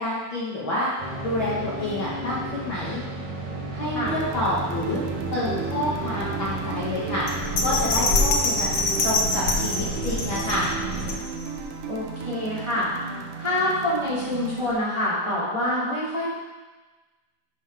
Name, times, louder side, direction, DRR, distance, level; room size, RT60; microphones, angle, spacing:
voice 1, 0.0-3.0 3.7-5.0 5.3-8.7 9.0-10.7, left 1 dB, 50° left, -8 dB, 1.6 m, -28 dB
sound 1, 1.0-11.2, right 3 dB, 55° right, 2.7 m, -33 dB
sound 2, 4.1-14.7, right 5 dB, 80° right, 2.4 m, -35 dB
Bell, 7.3-11.6 12.0-12.1, left 3 dB, 75° left, 1.1 m, -25 dB
voice 2, 11.9-12.9 13.4-16.4, left 1 dB, 10° right, -9 dB, 1.9 m, -26 dB
13.0 x 5.6 x 3.5 m, 1.2 s
omnidirectional pair, 3.7 m